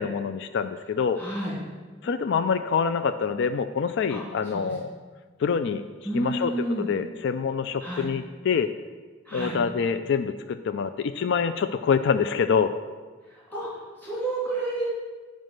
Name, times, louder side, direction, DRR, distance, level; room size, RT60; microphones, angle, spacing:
voice 1, 0.0-1.2 2.0-4.9 5.4-5.8 6.1-8.7 9.3-12.7, left 6 dB, 60° left, 10 dB, 0.4 m, -26 dB
voice 2, 1.2-1.6 4.1-4.2 4.5-4.6 6.0-6.9 7.8-8.1 9.3-9.6 13.5-13.7 14.0-14.9, right 2 dB, 10° left, -8 dB, 2.7 m, -30 dB
9.3 x 5.1 x 6.4 m, 1.4 s
head